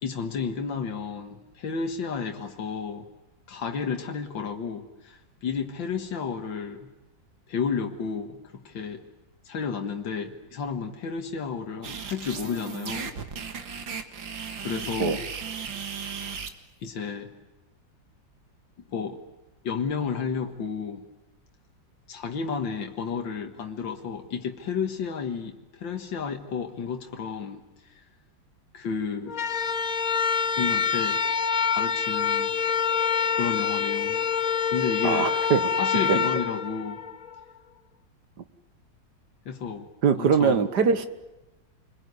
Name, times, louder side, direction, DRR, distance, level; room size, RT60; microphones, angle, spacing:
voice 1, 0.0-3.1 3.5-6.9 7.5-9.0 9.4-13.2 13.7-13.9 14.6-15.3 16.8-17.3 18.9-19.2 19.6-21.1 22.1-28.0 28.7-29.4 30.5-31.2 31.6-32.6 33.3-34.3 34.7-35.3 35.8-37.0 39.5-40.7, left 6 dB, 85° left, 2.3 m, -32 dB
sound 1, 11.8-16.5, right 6 dB, 90° right, 2.5 m, -36 dB
Annoying Air Siren, 29.3-37.4, left 6 dB, 50° left, 1.5 m, -26 dB
voice 2, 35.0-35.7 36.1-36.3 40.0-41.1, right 6 dB, 65° right, 1.9 m, -22 dB
28.0 x 21.5 x 9.6 m
omnidirectional pair, 2.0 m